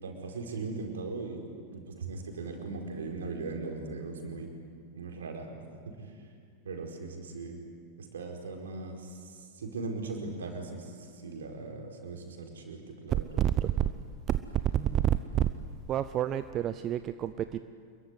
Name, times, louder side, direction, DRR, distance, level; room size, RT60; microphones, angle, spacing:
voice 1, 0.0-1.4 1.7-4.5 4.9-5.5 5.8-5.9 6.6-7.6 8.1-9.0 9.3-10.8 11.1-13.3, right 3 dB, 65° right, 2 dB, 4.8 m, -39 dB
voice 2, 13.1-13.9 14.3-14.4 14.7-15.5 15.9-17.6, right 11 dB, 30° right, 12 dB, 0.7 m, -28 dB
27.0 x 22.5 x 9.7 m, 2.1 s
figure-of-eight pair, 90°, 0 cm